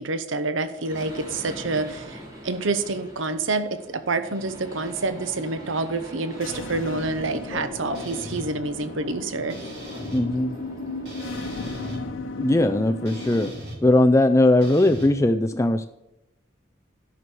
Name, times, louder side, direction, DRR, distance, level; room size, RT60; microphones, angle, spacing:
voice 1, 0.0-9.6, right 3 dB, 90° right, 11 dB, 0.9 m, -28 dB
sound 1, 0.7-12.1, left 1 dB, 20° right, 2.6 m, -41 dB
sound 2, 6.3-13.5, left 3 dB, 85° left, 0.7 m, -35 dB
sound 3, 7.9-8.4 9.5-10.2 11.1-12.0 13.1-13.8 14.6-15.1, equal, 60° right, 3.7 m, -38 dB
voice 2, 10.1-10.5 12.4-13.5 13.8-15.9, left 1 dB, 15° left, 8 dB, 0.3 m, -19 dB
12.5 x 6.1 x 6.1 m, 0.92 s
head